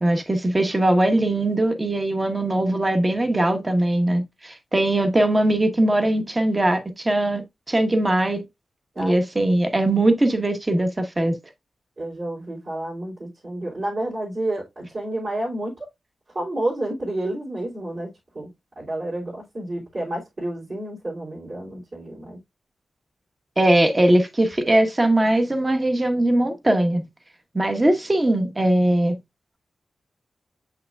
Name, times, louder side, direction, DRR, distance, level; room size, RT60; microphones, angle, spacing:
voice 1, 0.0-7.4 7.7-8.4 9.0-11.4 23.6-27.0 27.5-29.1, right 1 dB, 20° right, 1.1 m, -20 dB
voice 2, 12.0-15.8 16.3-18.1 18.3-18.5 18.8-22.4, right 1 dB, 45° right, 3.0 m, -30 dB
7.3 x 5.7 x 2.3 m
wide cardioid pair, 120°, 0 cm